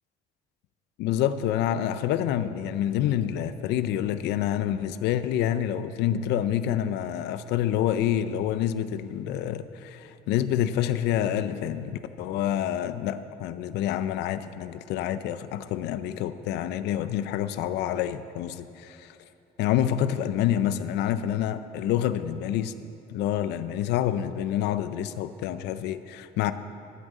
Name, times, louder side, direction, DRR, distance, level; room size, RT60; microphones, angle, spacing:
voice 1, 1.0-19.1 19.6-22.7 23.1-26.5, left 11 dB, 85° left, 12 dB, 0.5 m, -27 dB
13.5 x 6.4 x 7.4 m, 2.8 s
cardioid pair, 110°, 17 cm